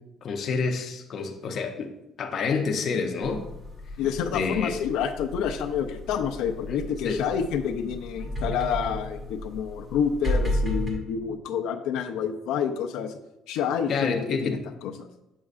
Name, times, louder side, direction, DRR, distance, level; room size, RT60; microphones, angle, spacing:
voice 1, 0.2-1.9 2.2-3.4 4.3-4.7 6.7-6.8 7.0-7.2 13.9-14.6, left 5 dB, 35° left, 3 dB, 0.6 m, -28 dB
sound 1, 3.2-10.9, left 1 dB, 20° right, 1.2 m, -33 dB
voice 2, 4.0-13.2 13.5-15.1, left 7 dB, 90° left, 3 dB, 0.5 m, -28 dB
7.1 x 6.4 x 2.5 m, 0.91 s
cardioid pair, 180°, 0 cm